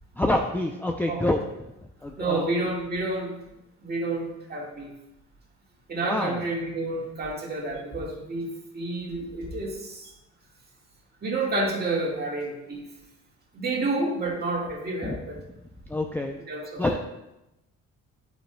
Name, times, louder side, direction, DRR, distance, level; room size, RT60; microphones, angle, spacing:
voice 1, 0.2-1.4 2.0-2.5 6.0-6.4 15.0-15.2 15.9-16.4 16.8-17.1, left 1 dB, 5° left, 2 dB, 0.4 m, -26 dB
voice 2, 2.2-3.4 3.8-4.9 5.9-10.1 11.2-12.9 13.5-15.4 16.5-16.8, right 2 dB, 30° right, -2 dB, 1.8 m, -29 dB
8.7 x 5.3 x 2.2 m, 0.92 s
cardioid pair, 90°, 30 cm